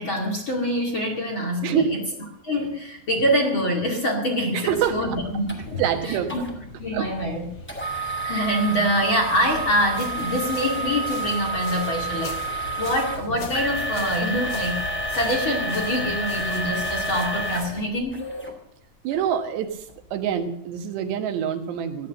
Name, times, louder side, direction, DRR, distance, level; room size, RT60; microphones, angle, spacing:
voice 1, 0.0-2.0 2.4-6.4 6.8-7.5 8.1-14.8 15.1-18.2, equal, 35° left, 0 dB, 2.4 m, -25 dB
voice 2, 1.6-2.0 4.5-5.2 5.8-6.3 6.9-7.1 19.0-22.1, right 9 dB, 80° right, 7 dB, 3.5 m, -26 dB
sound 1, 4.7-17.8, left 2 dB, 55° left, 5.9 m, -43 dB
sound 2, 5.5-5.6 6.3-6.5 7.7-18.5 19.1-19.2 19.8-19.9, right 2 dB, 5° left, 1.8 m, -29 dB
sound 3, 9.2-17.9, left 7 dB, 85° left, 3.7 m, -41 dB
15.5 x 10.5 x 7.9 m, 0.73 s
omnidirectional pair, 4.9 m